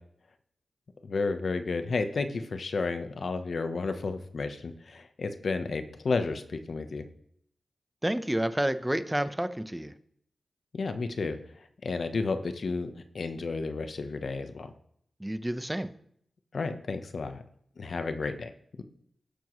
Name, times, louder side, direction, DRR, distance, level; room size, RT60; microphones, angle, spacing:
voice 1, 1.0-7.0 10.7-11.4 11.8-14.7 16.5-17.4 17.8-18.5, left 4 dB, 65° left, 8 dB, 1.0 m, -32 dB
voice 2, 8.0-9.9 15.2-15.9, right 1 dB, 10° right, 11 dB, 0.9 m, -29 dB
18.0 x 7.1 x 3.2 m, 0.67 s
cardioid pair, 45°, 0 cm